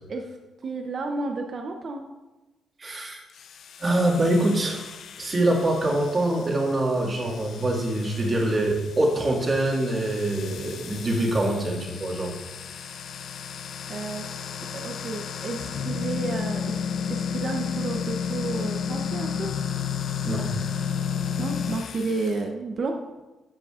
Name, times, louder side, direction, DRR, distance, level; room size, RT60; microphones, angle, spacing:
voice 1, 0.6-2.0 13.9-14.3 14.7-16.8 17.1-19.5 21.4-23.0, right 3 dB, 50° right, 3 dB, 0.7 m, -31 dB
voice 2, 2.8-3.2 3.8-4.9 5.2-12.3 20.2-20.5, right 1 dB, 35° right, -1 dB, 2.0 m, -24 dB
sound 1, 3.3-22.4, left 7 dB, 70° left, 0.5 m, -33 dB
12.0 x 6.7 x 2.5 m, 1.1 s
cardioid pair, 95°, 0 cm